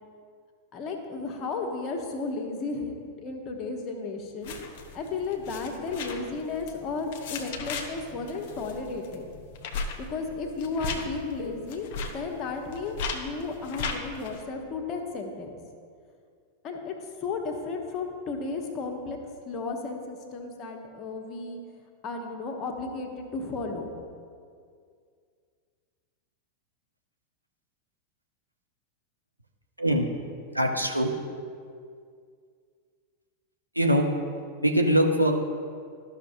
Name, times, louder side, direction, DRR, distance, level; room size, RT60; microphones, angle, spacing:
voice 1, 0.7-9.3 10.0-15.5 16.6-17.0 17.2-19.2 19.4-21.6 22.0-23.9, left 3 dB, 30° left, 2 dB, 1.1 m, -34 dB
sound 1, 4.4-14.4, left 4 dB, 50° left, 0.9 m, -37 dB
voice 2, 30.5-31.1 33.7-34.1 34.6-35.3, equal, 90° right, 2 dB, 0.7 m, -22 dB
13.0 x 5.8 x 2.7 m, 2.2 s
figure-of-eight pair, 90°, 0 cm